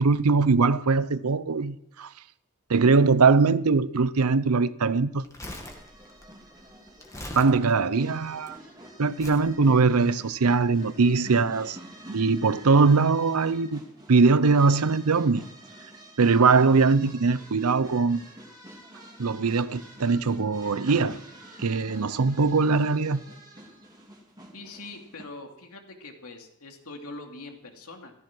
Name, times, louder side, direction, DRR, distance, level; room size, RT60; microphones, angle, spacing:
voice 1, 0.0-2.1 2.7-5.2 7.3-8.6 9.0-11.8 12.1-13.8 14.1-15.4 16.2-18.2 19.2-21.2 21.6-23.2, right 4 dB, 90° right, 0.7 m, -21 dB
Crumpling crinkling, 5.1-8.5 9.2-9.5 10.2-10.4, left 1 dB, 15° left, 2.0 m, -42 dB
sound 1, 5.4-25.2, right 1 dB, 20° right, 2.8 m, -48 dB
voice 2, 24.5-28.1, left 2 dB, 80° left, 2.7 m, -43 dB
15.0 x 13.5 x 6.1 m
head